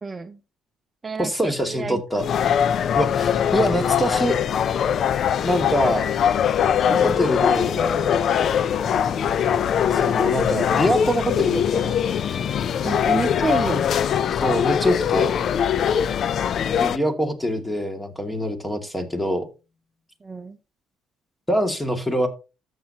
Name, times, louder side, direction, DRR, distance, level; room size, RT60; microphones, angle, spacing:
voice 1, 0.0-0.4 1.0-1.3 1.7-2.0 6.8-7.1 12.8-13.8 20.2-20.6, right 4 dB, 30° right, 10 dB, 0.7 m, -28 dB
voice 2, 1.2-2.3 2.9-4.4 5.4-6.1 7.0-7.8 9.9-11.9 14.4-15.3 16.8-19.4 21.5-22.3, equal, 10° left, 5 dB, 2.4 m, -24 dB
sound 1, 2.2-17.0, left 8 dB, 55° left, 0.5 m, -22 dB
Harp, 7.7-14.3 15.9-16.9, left 2 dB, 25° left, 5.4 m, -40 dB
13.0 x 7.4 x 2.9 m, 0.30 s
supercardioid pair, 70°, 0 cm